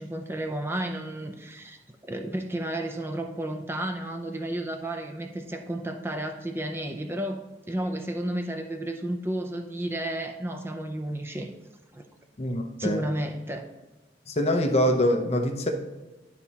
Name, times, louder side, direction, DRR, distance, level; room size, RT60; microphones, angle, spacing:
voice 1, 0.0-11.5 11.9-12.0 12.8-13.7, right 1 dB, 15° right, 5 dB, 0.4 m, -32 dB
voice 2, 12.4-13.0 14.3-15.7, left 1 dB, 35° left, 3 dB, 0.6 m, -24 dB
12.0 x 4.1 x 2.9 m, 1.2 s
head